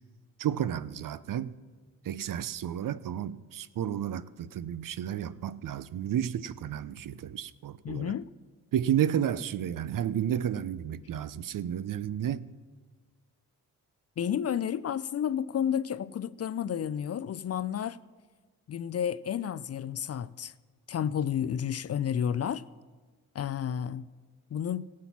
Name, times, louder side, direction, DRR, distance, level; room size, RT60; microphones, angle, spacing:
voice 1, 0.4-1.5 2.0-8.1 8.7-12.4, right 10 dB, 55° right, 0.6 m, -32 dB
voice 2, 7.8-8.3 14.2-18.0 18.7-20.5 20.9-22.6 23.3-24.1 24.5-24.9, left 9 dB, 40° left, 0.5 m, -31 dB
16.5 x 7.5 x 5.9 m
hypercardioid pair, 45°, 40 cm